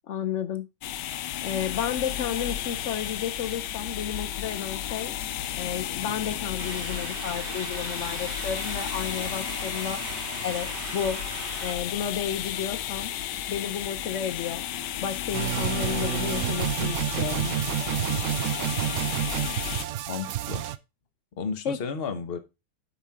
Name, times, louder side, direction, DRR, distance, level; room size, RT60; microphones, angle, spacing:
voice 1, 0.1-0.7 1.4-5.1 5.6-10.0 10.4-11.2 11.6-13.1 13.5-14.6 15.0-17.6 21.6-21.8, left 8 dB, 65° left, 0.7 m, -32 dB
sound 1, 0.8-19.9, left 11 dB, 90° left, 1.3 m, -33 dB
sound 2, 6.6-11.7, right 7 dB, 90° right, 1.6 m, -39 dB
sound 3, 15.3-20.8, right 12 dB, 75° right, 0.7 m, -29 dB
voice 2, 20.1-20.7 21.4-22.4, left 6 dB, 40° left, 1.0 m, -33 dB
8.4 x 6.0 x 3.6 m
omnidirectional pair, 1.8 m